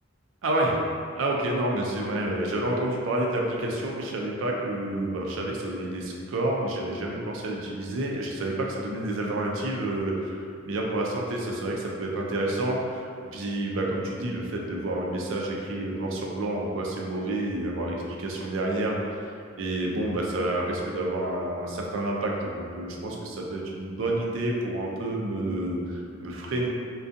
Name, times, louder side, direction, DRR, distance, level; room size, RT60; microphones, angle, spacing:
voice 1, 0.4-0.8 1.2-19.2 19.6-26.7, right 1 dB, 75° right, -1 dB, 0.4 m, -29 dB
2.6 x 2.2 x 2.4 m, 2.3 s
head